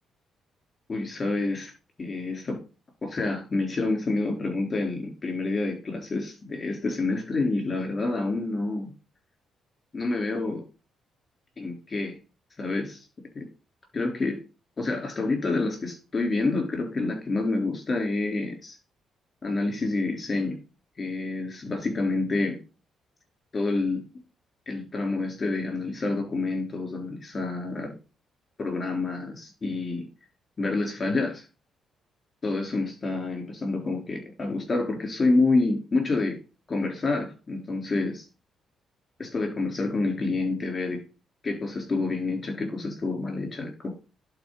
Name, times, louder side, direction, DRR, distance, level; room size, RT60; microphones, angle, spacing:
voice 1, 0.9-1.7 2.0-2.6 3.0-8.9 9.9-10.6 11.6-12.2 12.6-13.0 13.3-13.5 13.9-14.4 14.8-18.8 19.4-20.6 21.0-22.6 23.5-24.0 24.7-27.9 28.6-30.1 30.6-31.4 32.4-36.4 36.7-38.2 39.2-41.0 41.4-43.9, left 3 dB, 30° left, 2 dB, 3.9 m, -28 dB
11.0 x 4.5 x 4.1 m, 0.32 s
cardioid pair, 90°, 0 cm